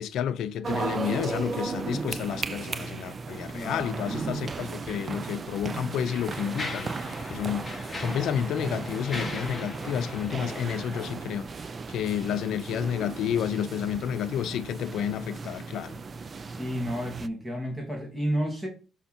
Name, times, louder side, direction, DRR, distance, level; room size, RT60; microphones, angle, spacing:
voice 1, 0.0-6.9 7.3-7.7 8.0-11.5 11.9-16.0, left 9 dB, 80° left, 0.6 m, -30 dB
sound 1, 0.6-17.3, right 4 dB, 40° right, 0.5 m, -36 dB
voice 2, 3.5-4.2 16.5-18.7, equal, 5° right, 3.0 m, -32 dB
Mechanisms, 5.0-5.1 5.8-11.5, left 2 dB, 20° left, 2.2 m, -40 dB
5.7 x 5.7 x 4.4 m
cardioid pair, 90°, 0 cm